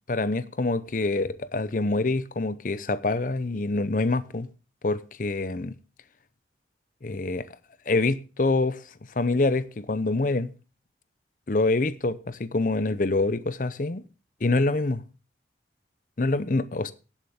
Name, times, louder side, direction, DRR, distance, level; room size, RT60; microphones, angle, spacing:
voice 1, 0.1-4.5 4.8-5.7 7.0-7.5 7.9-8.8 9.2-10.5 11.5-14.0 14.4-15.0 16.2-16.9, left 2 dB, 45° left, 0.6 m, -25 dB
18.0 x 7.4 x 3.6 m
head